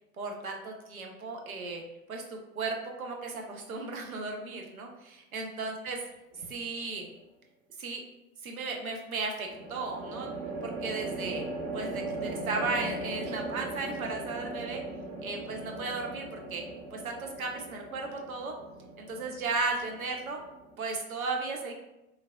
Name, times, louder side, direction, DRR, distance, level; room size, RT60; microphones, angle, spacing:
voice 1, 0.2-1.8 2.1-6.0 6.4-7.1 7.8-8.0 8.4-10.3 10.6-11.4 11.7-14.8 15.2-16.6 16.9-18.5 19.0-20.4 20.8-21.7, right 3 dB, 85° right, 2 dB, 0.5 m, -35 dB
sound 1, 6.3-6.9 9.4-20.8, right 2 dB, 35° right, 0.5 m, -39 dB
3.2 x 2.2 x 2.2 m, 0.93 s
figure-of-eight pair, 75°, 41 cm